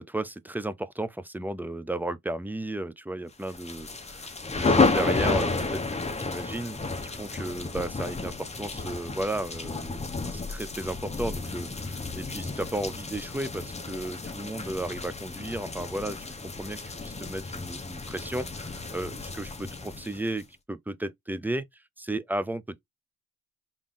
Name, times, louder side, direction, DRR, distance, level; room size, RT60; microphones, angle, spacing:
voice 1, 0.0-21.7 22.0-22.8, right 1 dB, 5° right, 0.5 m, -34 dB
sound 1, 3.5-20.4, left 3 dB, 15° left, 0.8 m, -31 dB
3.6 x 3.1 x 3.6 m
supercardioid pair, 65°, 38 cm